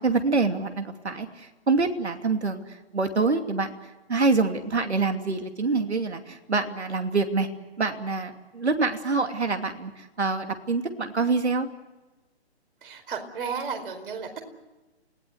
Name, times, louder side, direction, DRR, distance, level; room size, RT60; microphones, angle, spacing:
voice 1, 0.0-3.7 4.1-7.5 7.8-11.7, right 3 dB, 75° right, 6 dB, 2.8 m, -26 dB
voice 2, 12.8-14.4, right 5 dB, 55° right, 5 dB, 4.7 m, -33 dB
29.0 x 17.5 x 7.9 m, 1.1 s
figure-of-eight pair, 145°, 33 cm